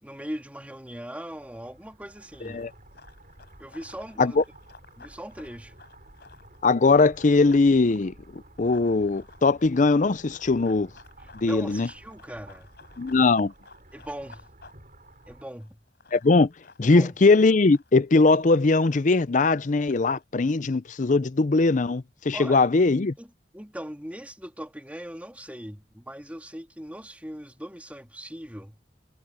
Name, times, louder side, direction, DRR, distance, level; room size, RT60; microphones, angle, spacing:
voice 1, 0.0-2.6 3.6-4.4 5.0-5.8 11.2-12.7 13.9-14.5 15.3-15.8 16.8-17.1 22.3-22.6 23.2-23.3 23.5-28.8, equal, 10° right, 2.6 m, -40 dB
sound 1, 1.3-15.4, right 1 dB, 45° right, 7.1 m, -52 dB
Run, 2.2-7.7 8.0-20.2, left 4 dB, 55° left, 6.9 m, -54 dB
voice 2, 6.6-10.9 11.4-11.9 13.0-13.5 16.1-16.5 16.8-23.1, left 3 dB, 40° left, 0.5 m, -20 dB
head